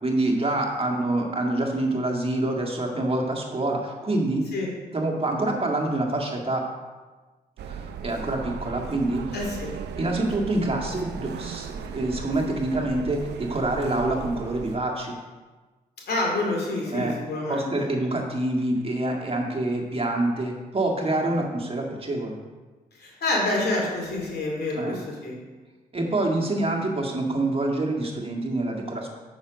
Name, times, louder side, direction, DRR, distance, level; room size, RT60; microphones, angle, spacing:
voice 1, 0.0-4.4 4.9-6.7 7.6-9.4 10.0-15.2 16.9-17.1 17.5-22.4 24.8-25.0 25.9-29.1, right 2 dB, 35° right, 0 dB, 1.8 m, -26 dB
sound 1, 7.6-14.8, right 6 dB, 80° right, 0.6 m, -37 dB
voice 2, 9.3-9.7 16.1-17.9 22.9-25.3, left 2 dB, 70° left, -1 dB, 2.5 m, -27 dB
7.1 x 6.1 x 5.1 m, 1.3 s
supercardioid pair, 55°, 17 cm